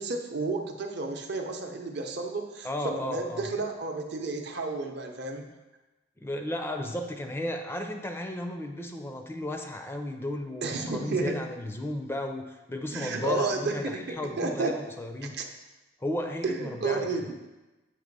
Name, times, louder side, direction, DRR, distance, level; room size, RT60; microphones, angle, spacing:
voice 1, 0.0-5.4 10.6-11.4 12.9-14.7 15.2-15.5 16.4-17.4, right 3 dB, 60° right, 4 dB, 0.7 m, -32 dB
voice 2, 2.6-3.5 6.2-15.4 16.0-17.2, left 1 dB, 10° left, 5 dB, 0.4 m, -34 dB
8.0 x 2.9 x 5.3 m, 1.1 s
head